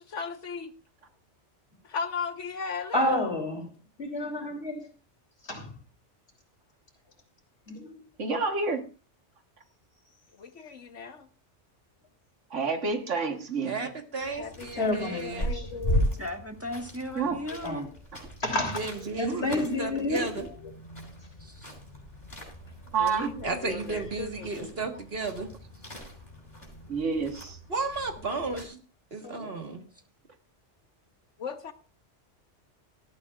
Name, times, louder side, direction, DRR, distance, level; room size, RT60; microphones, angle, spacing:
voice 1, 0.1-0.7 1.8-3.2 10.4-11.3 14.4-16.3 23.0-24.7 31.4-31.7, left 5 dB, 80° left, 8 dB, 1.5 m, -37 dB
voice 2, 2.9-3.7 4.0-4.9 5.4-5.8 7.7-7.9 14.8-15.7 17.6-17.9 18.4-18.9 19.2-20.2 28.3-28.4 29.2-29.5, left 1 dB, 60° left, 2 dB, 3.6 m, -30 dB
voice 3, 8.2-8.8 12.5-13.7 17.2-17.4 19.3-19.5 22.9-23.3 26.9-27.6, right 4 dB, 85° right, 6 dB, 1.8 m, -28 dB
voice 4, 13.6-15.6 18.7-20.4 23.4-25.5 27.7-28.8 29.1-29.8, right 3 dB, 55° right, 4 dB, 1.9 m, -33 dB
sound 1, 14.2-28.7, equal, 45° left, 5.9 m, -37 dB
voice 5, 16.2-17.9 21.4-21.7, equal, 10° right, 4 dB, 1.5 m, -36 dB
18.5 x 12.5 x 2.5 m, 0.34 s
omnidirectional pair, 1.2 m